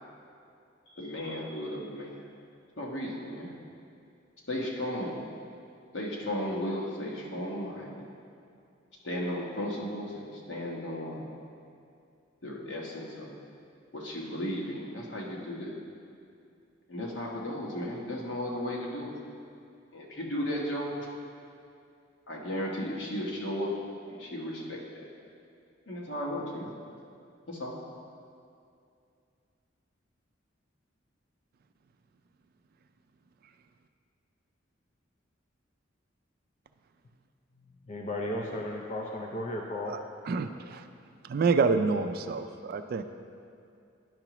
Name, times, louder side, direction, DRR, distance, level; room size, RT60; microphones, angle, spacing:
voice 1, 1.0-2.2 2.8-3.5 4.5-5.2 5.9-8.1 9.0-11.3 12.4-13.4 13.9-15.7 16.9-19.1 19.9-21.1 22.3-23.7 24.1-25.0 25.9-26.7 27.5-27.8, left 1 dB, 65° left, -3 dB, 1.2 m, -35 dB
voice 2, 37.9-39.9, left 1 dB, 40° left, 0 dB, 0.5 m, -34 dB
voice 3, 40.2-40.9 41.2-43.0, right 4 dB, 50° right, 9 dB, 0.3 m, -27 dB
10.5 x 5.8 x 3.0 m, 2.5 s
head